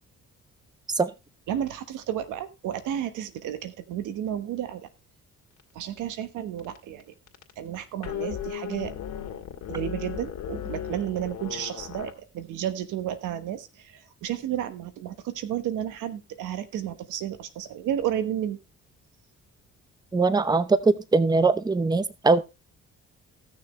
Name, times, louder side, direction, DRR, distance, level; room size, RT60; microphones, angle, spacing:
voice 1, 1.5-4.9 5.7-7.1 7.6-8.9 9.7-18.6, right 10 dB, 90° right, 12 dB, 1.2 m, -32 dB
sound 1, 5.6-5.7 6.0-6.2 6.6-7.0 7.3-12.1, left 9 dB, 70° left, 2.1 m, -36 dB
voice 2, 20.1-22.4, right 3 dB, 15° right, 15 dB, 0.7 m, -21 dB
16.0 x 6.6 x 3.2 m, 0.25 s
cardioid pair, 90°, 30 cm